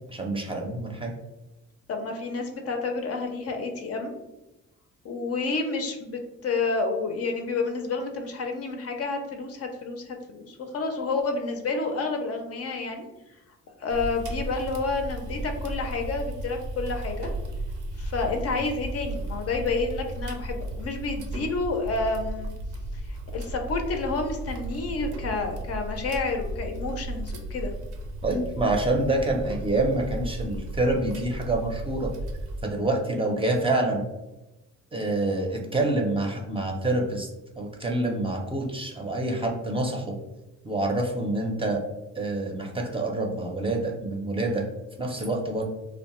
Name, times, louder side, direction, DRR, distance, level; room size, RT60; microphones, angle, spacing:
voice 1, 0.1-1.1 28.2-32.1 32.6-34.1 34.9-37.3 37.6-40.1 40.6-41.8 42.2-44.6 45.0-45.6, right 2 dB, 20° right, 1 dB, 0.5 m, -27 dB
voice 2, 1.9-4.1 5.0-13.1 13.8-17.3 18.0-22.5 22.9-27.7, left 3 dB, 55° left, 4 dB, 0.5 m, -29 dB
sound 1, 13.9-32.6, right 1 dB, 80° right, 0.6 m, -35 dB
2.7 x 2.0 x 2.9 m, 1.0 s
cardioid pair, 90°, 30 cm